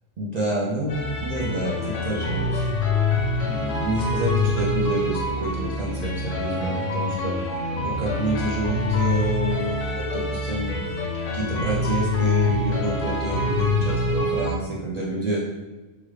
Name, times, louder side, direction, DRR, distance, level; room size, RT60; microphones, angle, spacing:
voice 1, 0.2-2.7 3.4-10.7 11.3-15.4, right 1 dB, 55° right, -6 dB, 0.4 m, -28 dB
sound 1, 0.9-14.5, left 2 dB, 75° left, 1.1 m, -25 dB
3.0 x 2.4 x 3.1 m, 1.2 s
omnidirectional pair, 1.3 m